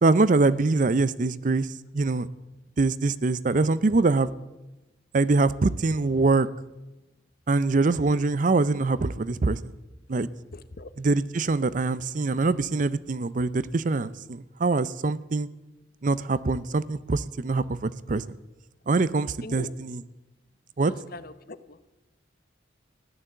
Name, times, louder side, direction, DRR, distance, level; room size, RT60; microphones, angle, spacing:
voice 1, 0.0-1.7 1.9-2.3 2.8-4.4 5.1-6.5 7.5-9.7 10.1-10.3 11.0-15.5 16.0-18.4 18.9-20.0 20.8-20.9, right 3 dB, 45° right, 17 dB, 0.5 m, -24 dB
voice 2, 10.5-10.9 19.4-19.7 20.8-21.8, left 3 dB, 50° left, 14 dB, 0.8 m, -41 dB
15.0 x 11.5 x 7.7 m, 1.0 s
head